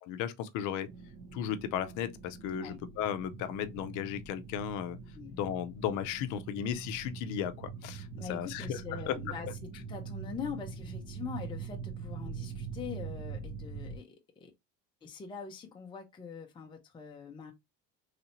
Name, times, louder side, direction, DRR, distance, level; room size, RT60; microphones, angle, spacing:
voice 1, 0.0-0.9 1.3-5.0 5.3-9.2 9.4-9.5, left 9 dB, 65° left, 0.6 m, -35 dB
sound 1, 0.9-14.0, right 5 dB, 90° right, 1.1 m, -43 dB
voice 2, 8.1-14.5 15.0-17.5, left 6 dB, 15° left, 0.5 m, -43 dB
3.2 x 2.6 x 2.9 m
cardioid pair, 160°, 33 cm